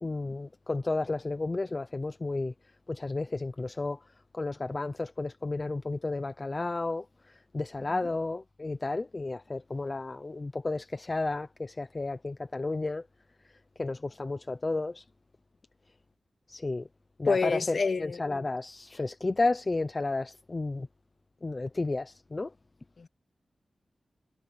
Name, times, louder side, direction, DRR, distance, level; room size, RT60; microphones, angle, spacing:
voice 1, 0.0-2.5 2.9-4.0 4.3-13.0 13.8-15.0 16.5-16.9 17.2-20.9 21.4-22.5, left 2 dB, 25° left, 0.7 m, -32 dB
voice 2, 17.2-18.2 23.0-23.1, left 4 dB, 50° left, 2.0 m, -28 dB
wide cardioid pair, 155°, 0 cm